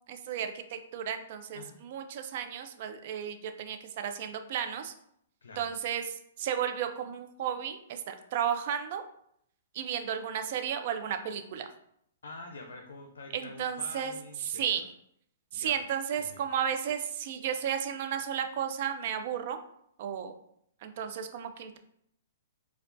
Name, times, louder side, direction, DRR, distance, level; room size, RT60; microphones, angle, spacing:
voice 1, 0.0-4.9 5.6-9.0 9.7-11.7 13.3-14.1 14.4-14.9 15.5-19.6 20.0-20.3 20.8-21.8, right 8 dB, 50° right, 8 dB, 0.4 m, -33 dB
voice 2, 12.2-14.8 15.5-15.8 16.2-16.4, left 2 dB, 85° left, 4 dB, 0.5 m, -46 dB
4.5 x 2.3 x 2.6 m, 0.70 s
hypercardioid pair, 145°, 0 cm